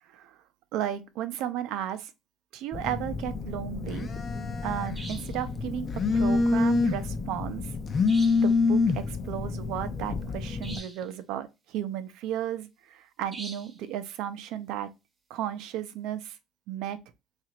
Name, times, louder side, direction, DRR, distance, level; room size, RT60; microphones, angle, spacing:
voice 1, 0.7-2.1 2.5-4.1 4.6-7.7 8.4-15.0 15.3-16.4 16.7-17.1, right 11 dB, 80° right, 0.5 m, -34 dB
Telephone, 2.7-10.8, left 4 dB, 35° left, 0.5 m, -27 dB
sound 1, 4.9-5.4 8.1-8.6 10.6-11.1 13.3-13.8, right 2 dB, 20° right, 0.7 m, -43 dB
2.9 x 2.5 x 4.2 m
cardioid pair, 120°, 0 cm